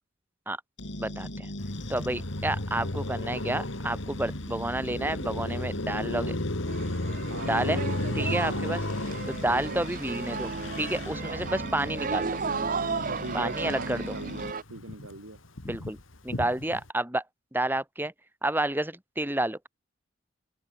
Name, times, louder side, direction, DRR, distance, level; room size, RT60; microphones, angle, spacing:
sound 1, 0.8-14.5, left 1 dB, 60° left, 5.0 m, -40 dB
voice 1, 1.0-1.5 1.9-6.4 7.5-7.8 8.2-8.8 9.3-10.5 10.8-12.4 13.3-14.1 15.7-16.0 16.2-17.2 17.5-18.1 18.4-19.7, right 1 dB, 10° right, 2.0 m, -30 dB
Car passing by, 1.6-14.1 14.4-16.9, left 1 dB, 80° left, 2.4 m, -35 dB
sound 2, 6.7-14.6, right 5 dB, 45° right, 0.6 m, -35 dB
voice 2, 7.2-7.9 8.4-8.7 9.5-9.8 11.4-11.7 13.0-15.4, right 2 dB, 85° right, 3.5 m, -41 dB
head